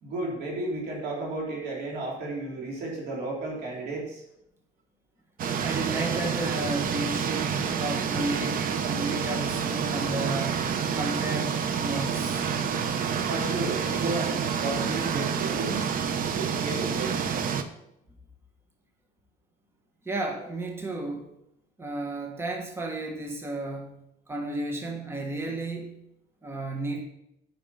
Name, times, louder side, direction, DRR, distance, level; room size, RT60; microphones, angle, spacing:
voice 1, 0.0-4.2 13.3-15.9 16.3-17.2, right 2 dB, 75° right, -2 dB, 3.4 m, -33 dB
sound 1, 5.4-17.6, right 7 dB, 55° right, 0.9 m, -28 dB
voice 2, 5.6-12.4 20.0-21.3 21.8-26.0 26.4-27.0, right 2 dB, 15° right, 2 dB, 1.3 m, -33 dB
8.9 x 6.0 x 5.4 m, 0.80 s
cardioid pair, 110°, 17 cm